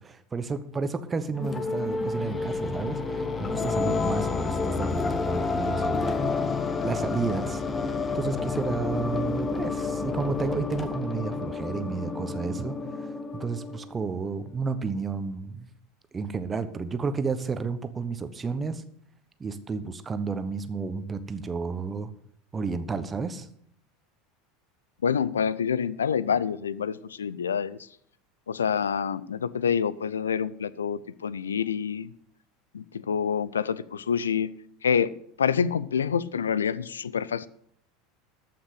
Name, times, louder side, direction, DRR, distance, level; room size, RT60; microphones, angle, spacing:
voice 1, 0.0-6.5 6.8-7.6 7.9-15.7 16.1-18.8 19.4-22.1 22.5-23.5, right 4 dB, 20° right, 11 dB, 1.1 m, -32 dB
sound 1, 1.4-14.3, left 4 dB, 20° left, 1.2 m, -30 dB
voice 2, 25.0-27.8 28.5-32.1 32.7-34.5 34.8-35.1 35.4-37.5, left 7 dB, 75° left, 19 dB, 0.5 m, -27 dB
14.0 x 5.9 x 7.9 m, 0.64 s
figure-of-eight pair, 75°, 0 cm